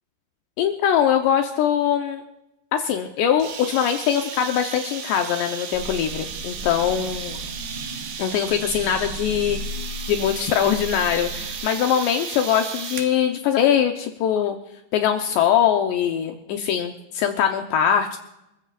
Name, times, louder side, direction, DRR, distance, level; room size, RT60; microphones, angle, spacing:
voice 1, 0.6-2.2 2.7-7.4 8.2-9.6 10.1-14.6 14.9-18.2, left 9 dB, 75° left, 4 dB, 2.9 m, -22 dB
sound 1, 3.4-13.1, right 7 dB, 65° right, 3.4 m, -34 dB
sound 2, 5.7-11.5, left 1 dB, 20° right, 1.7 m, -36 dB
29.5 x 15.0 x 2.5 m, 0.85 s
omnidirectional pair, 5.5 m